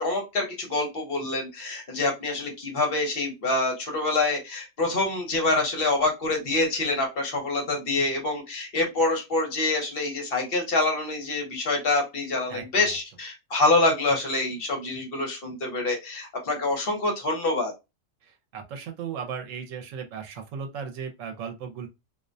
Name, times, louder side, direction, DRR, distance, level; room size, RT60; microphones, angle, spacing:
voice 1, 0.0-17.7, left 2 dB, 50° left, 0.9 m, -26 dB
voice 2, 12.5-13.0 18.2-21.9, right 7 dB, 85° right, 1.0 m, -36 dB
2.4 x 2.1 x 2.5 m
omnidirectional pair, 1.3 m